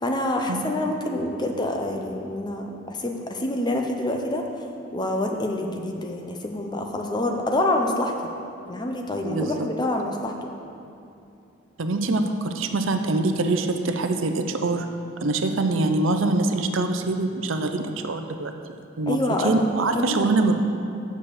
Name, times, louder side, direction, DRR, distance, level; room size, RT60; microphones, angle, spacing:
voice 1, 0.0-4.5 4.9-8.3 8.7-10.3 19.1-19.6 19.9-20.4, left 1 dB, 20° left, 2 dB, 0.7 m, -26 dB
voice 2, 9.2-9.7 11.8-14.9 15.2-18.5 19.0-19.2 19.4-20.5, right 2 dB, 75° right, 6 dB, 0.6 m, -24 dB
7.7 x 6.3 x 6.7 m, 2.7 s
head